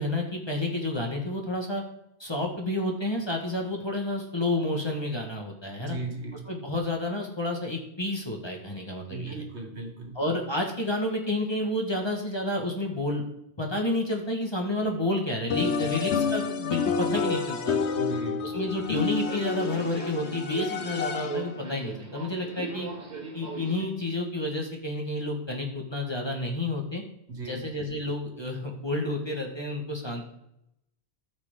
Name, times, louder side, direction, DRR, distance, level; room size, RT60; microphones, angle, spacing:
voice 1, 0.0-1.8 2.2-6.0 6.5-9.4 10.2-13.2 13.6-17.8 18.4-22.9 23.3-27.0 27.5-30.3, left 1 dB, 25° left, 1 dB, 1.7 m, -30 dB
voice 2, 5.8-6.5 9.1-10.2 15.8-16.1 17.9-18.5 27.3-27.6, right 3 dB, 80° right, 2 dB, 2.0 m, -37 dB
sound 1, 15.5-21.6, left 5 dB, 80° left, 1.1 m, -29 dB
Subway metro underground, 18.8-23.8, right 3 dB, 40° right, 1.8 m, -39 dB
14.5 x 6.1 x 3.8 m, 0.80 s
omnidirectional pair, 1.1 m